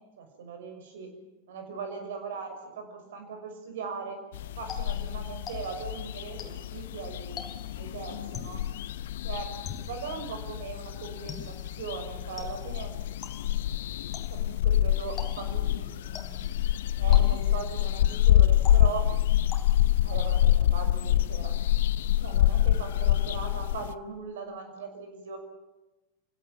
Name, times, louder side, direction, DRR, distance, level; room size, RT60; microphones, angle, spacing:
voice 1, 0.2-1.1 1.5-4.2 4.6-7.4 7.8-8.6 9.2-9.5 9.8-12.9 14.3-16.4 17.0-19.0 20.0-21.5 22.2-25.4, right 5 dB, 60° right, 5 dB, 6.0 m, -39 dB
sound 1, 4.3-23.9, left 12 dB, 55° left, 0.8 m, -26 dB
Electronic water drop, 4.7-6.0 6.4-6.8 7.4-7.9 8.3-8.7 9.7-10.1 11.3-11.8 12.4-12.8 13.2-13.6 14.1-14.5 15.2-15.7 16.2-16.6 17.1-17.7 18.7-19.2 19.5-20.0, left 6 dB, 25° left, 3.7 m, -44 dB
28.5 x 16.5 x 9.2 m, 1.1 s
figure-of-eight pair, 90°, 0 cm